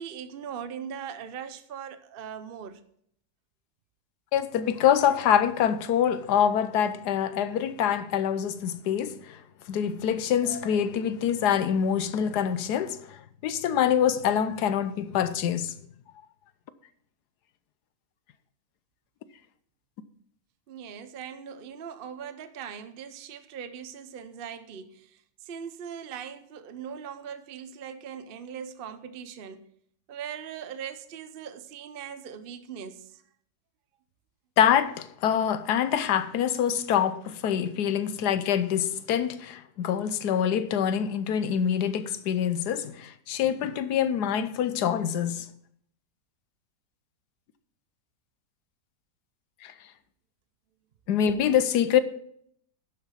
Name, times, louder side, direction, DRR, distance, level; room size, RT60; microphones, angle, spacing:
voice 1, 0.0-2.8 20.7-29.6 30.1-33.2, right 8 dB, 60° right, 0.5 m, -40 dB
voice 2, 4.3-9.4 9.7-15.8 34.6-45.5 49.6-49.7 51.1-52.0, left 9 dB, 75° left, 1.3 m, -25 dB
11.5 x 6.8 x 5.6 m
omnidirectional pair, 1.8 m